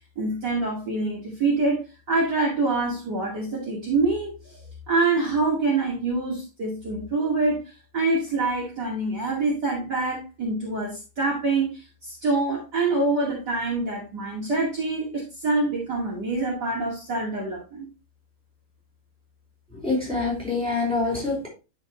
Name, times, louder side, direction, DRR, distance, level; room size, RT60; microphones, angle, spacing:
voice 1, 0.2-1.8 2.1-7.6 7.9-17.9 20.7-20.8, right 3 dB, 50° right, -4 dB, 2.8 m, -25 dB
voice 2, 19.7-21.5, left 3 dB, ahead, -3 dB, 5.1 m, -26 dB
12.0 x 4.8 x 3.1 m, 0.30 s
omnidirectional pair, 2.4 m